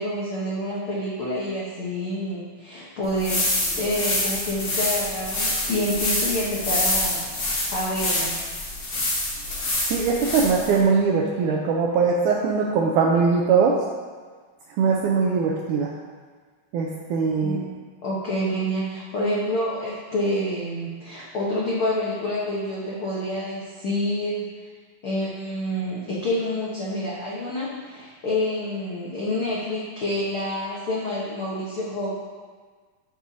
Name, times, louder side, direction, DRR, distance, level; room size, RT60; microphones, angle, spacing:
voice 1, 0.0-3.5 3.8-8.5 17.4-17.6 18.0-24.5 25.0-32.1, left 1 dB, 75° left, -6 dB, 1.2 m, -28 dB
sound 1, 3.0-10.8, left 1 dB, 45° left, 1.3 m, -26 dB
voice 2, 9.9-13.8 14.8-15.9 16.7-17.6, right 5 dB, 80° right, -1 dB, 1.8 m, -21 dB
13.5 x 6.2 x 2.8 m, 1.5 s
omnidirectional pair, 4.2 m